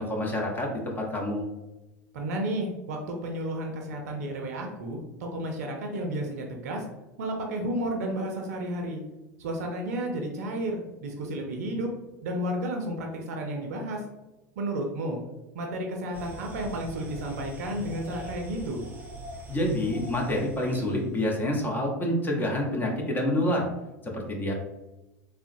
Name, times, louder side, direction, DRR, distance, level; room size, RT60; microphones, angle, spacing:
voice 1, 0.0-1.4 19.5-23.7 24.0-24.5, left 1 dB, 20° left, 0 dB, 0.7 m, -27 dB
voice 2, 2.1-6.8 7.2-9.0 9.4-11.9 12.2-14.0 14.6-15.2 15.5-18.8, right 1 dB, 70° right, 2 dB, 0.5 m, -32 dB
sound 1, 16.1-21.1, right 1 dB, 20° right, 0.7 m, -42 dB
3.6 x 2.0 x 2.6 m, 1.0 s
hypercardioid pair, 80°, 9 cm